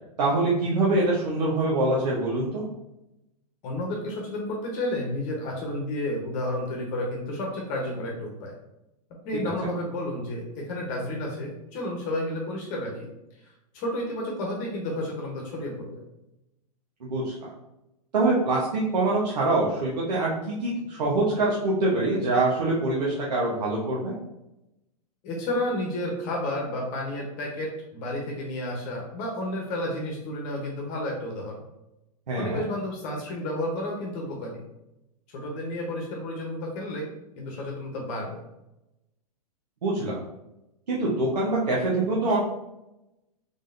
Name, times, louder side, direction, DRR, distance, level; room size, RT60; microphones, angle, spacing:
voice 1, 0.2-2.6 9.6-9.7 17.0-17.5 18.1-24.2 32.3-32.6 39.8-40.2 40.9-42.4, right 2 dB, 80° right, -6 dB, 1.0 m, -24 dB
voice 2, 3.6-8.5 9.2-13.0 13.7-16.0 25.2-31.6 32.3-34.6 35.3-37.1 37.4-38.4, left 1 dB, 40° left, -1 dB, 1.0 m, -31 dB
3.7 x 3.5 x 2.6 m, 0.91 s
hypercardioid pair, 120°, 21 cm